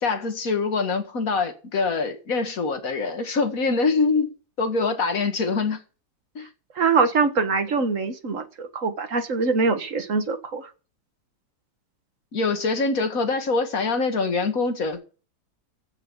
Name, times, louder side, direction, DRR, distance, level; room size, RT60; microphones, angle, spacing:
voice 1, 0.0-4.3 4.6-5.8 6.4-6.5 12.3-15.0, left 4 dB, 55° left, 2.2 m, -24 dB
voice 2, 6.8-10.7, right 4 dB, 50° right, 1.7 m, -23 dB
15.0 x 5.6 x 7.1 m
omnidirectional pair, 1.8 m